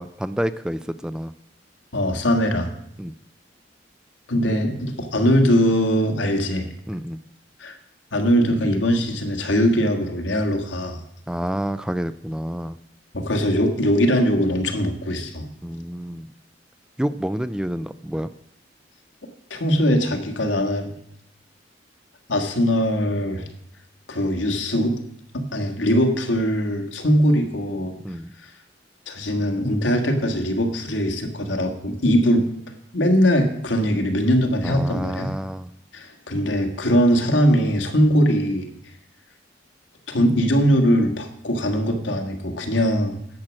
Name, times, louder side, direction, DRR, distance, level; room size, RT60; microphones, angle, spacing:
voice 1, 0.0-1.3 3.0-3.1 6.9-7.2 11.3-12.8 15.6-16.3 17.0-18.3 28.0-28.3 34.6-35.7, equal, 5° right, 13 dB, 0.3 m, -28 dB
voice 2, 1.9-2.7 4.3-6.7 7.6-7.8 8.1-11.0 13.1-15.5 19.5-20.9 22.3-23.5 24.1-25.0 25.3-27.9 29.1-32.4 32.9-35.3 35.9-38.7 40.1-43.2, equal, 90° left, 4 dB, 1.7 m, -21 dB
10.5 x 7.5 x 6.3 m, 0.75 s
head